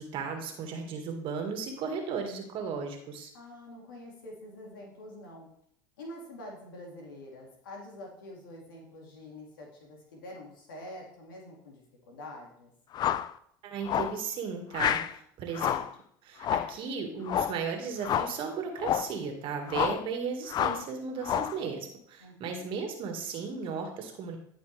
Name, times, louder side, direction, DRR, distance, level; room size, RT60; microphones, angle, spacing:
voice 1, 0.0-3.3 13.6-15.8 16.2-24.4, right 5 dB, 55° right, 4 dB, 1.8 m, -35 dB
voice 2, 3.3-5.5 6.0-12.7 22.2-22.8, left 1 dB, 85° left, -1 dB, 2.4 m, -46 dB
sound 1, 12.9-13.3 13.9-14.2 14.7-15.1 15.5-15.9 16.4-16.8 17.3-17.6 18.0-18.4 18.8-19.1 19.7-20.1 20.5-20.9 21.2-21.6, left 10 dB, 40° left, 0.4 m, -29 dB
13.0 x 5.1 x 3.4 m, 0.68 s
hypercardioid pair, 85°, 11 cm